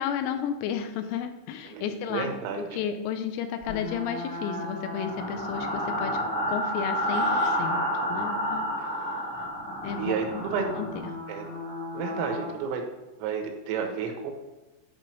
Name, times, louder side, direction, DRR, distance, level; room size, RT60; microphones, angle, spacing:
voice 1, 0.0-6.2 6.5-7.8 8.1-8.7 9.8-10.4 10.8-10.9, left 8 dB, 85° left, 8 dB, 3.0 m, -32 dB
voice 2, 1.7-2.6 8.8-8.9 10.0-10.7 11.3-11.4 11.9-12.8 13.2-14.3, right 6 dB, 85° right, 4 dB, 3.6 m, -31 dB
sound 1, 3.6-12.5, equal, 25° left, 1.4 m, -30 dB
10.5 x 4.8 x 3.1 m, 1.1 s
omnidirectional pair, 5.9 m